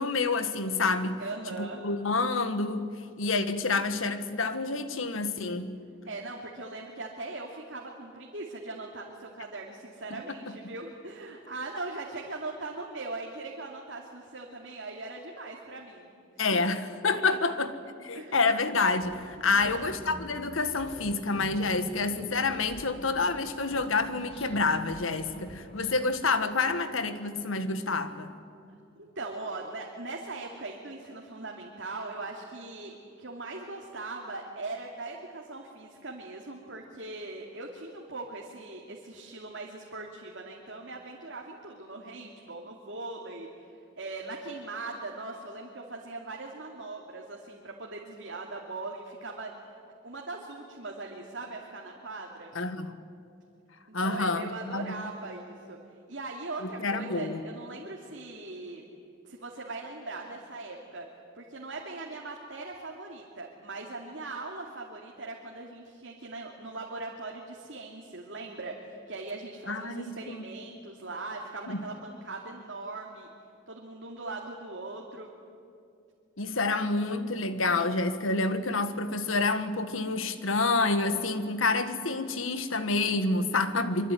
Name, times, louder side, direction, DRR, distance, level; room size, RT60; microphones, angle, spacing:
voice 1, 0.0-1.2 1.6-2.9 3.2-5.7 10.1-10.2 10.5-10.6 16.4-17.7 18.0-28.3 52.5-52.9 53.9-55.1 56.6-57.4 69.7-70.4 71.7-71.8 76.4-84.1, left 3 dB, 85° left, 10 dB, 1.7 m, -28 dB
voice 2, 1.2-1.8 6.0-16.1 16.5-16.6 17.1-17.4 18.1-18.4 19.4-19.9 28.9-32.9 33.2-43.5 44.0-49.5 50.0-52.5 53.9-55.8 56.1-58.8 59.2-61.1 61.3-73.3 73.7-75.3, right 3 dB, 65° right, -1 dB, 2.6 m, -40 dB
sound 1, 19.0-23.4 23.7-26.0, equal, 30° left, 4.5 m, -46 dB
25.5 x 23.5 x 9.3 m, 2.5 s
head